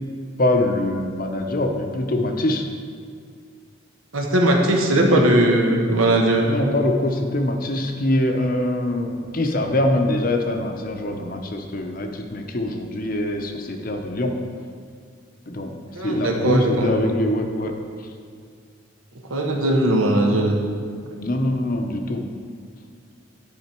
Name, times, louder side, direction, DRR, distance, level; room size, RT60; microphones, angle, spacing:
voice 1, 0.4-2.7 5.0-5.3 6.5-14.4 15.5-15.7 16.0-17.8 21.2-22.3, left 1 dB, 40° left, 4 dB, 0.7 m, -23 dB
voice 2, 4.1-6.6 15.9-17.1 19.3-20.7 21.1-21.3, right 1 dB, 85° right, 1 dB, 1.1 m, -19 dB
11.0 x 5.1 x 4.4 m, 2.1 s
head